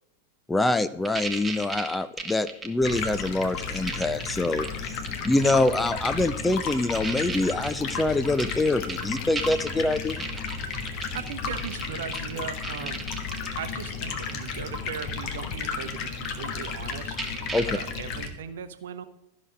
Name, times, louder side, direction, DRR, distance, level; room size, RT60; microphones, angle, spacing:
voice 1, 0.5-5.0 5.2-10.3 17.5-17.7, left 2 dB, 10° left, 12 dB, 0.5 m, -25 dB
sound 1, 1.1-3.4 3.8-4.7 5.1-5.9 6.4-6.5 6.9-12.3 12.6-13.5 14.2-14.5 16.2-16.3 16.6-16.7 16.9-17.8, right 4 dB, 10° right, 1.3 m, -34 dB
Stream, 2.8-18.3, left 5 dB, 40° left, 1.4 m, -33 dB
voice 2, 11.1-13.1 13.6-17.2 17.7-19.0, right 8 dB, 60° right, 10 dB, 0.8 m, -38 dB
13.5 x 6.3 x 5.0 m, 0.89 s
figure-of-eight pair, 90°, 0 cm